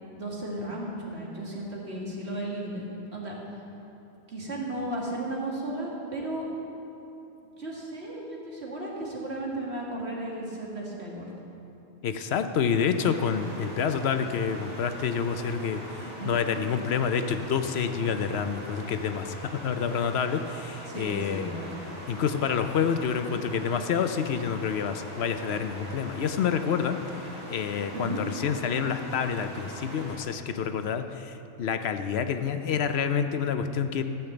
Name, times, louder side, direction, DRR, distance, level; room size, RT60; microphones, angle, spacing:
voice 1, 0.0-3.4 4.3-6.4 7.6-11.3 16.0-16.4 20.8-21.8 27.9-28.2, right 1 dB, 75° right, -3 dB, 2.3 m, -35 dB
voice 2, 12.0-15.8 16.2-21.6 22.1-34.0, left 7 dB, 75° left, 9 dB, 0.9 m, -28 dB
sound 1, 12.9-30.2, equal, 45° right, 2.9 m, -42 dB
14.0 x 5.9 x 7.8 m, 2.9 s
omnidirectional pair, 1.1 m